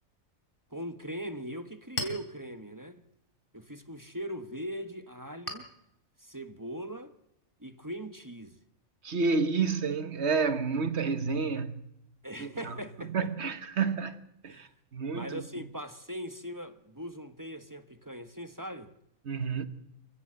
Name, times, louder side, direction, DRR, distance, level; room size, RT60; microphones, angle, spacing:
voice 1, 0.7-3.0 3.5-5.7 6.2-7.1 7.6-8.6 12.2-13.3 14.5-14.7 15.1-18.9, equal, 15° right, 1.2 m, -40 dB
Chink clink, 1.4-8.5, left 2 dB, 40° left, 3.6 m, -45 dB
voice 2, 9.0-11.8 12.4-12.7 13.1-14.2 14.4-15.4 19.3-19.7, right 4 dB, 55° right, 1.7 m, -30 dB
27.5 x 15.5 x 7.8 m
omnidirectional pair, 1.4 m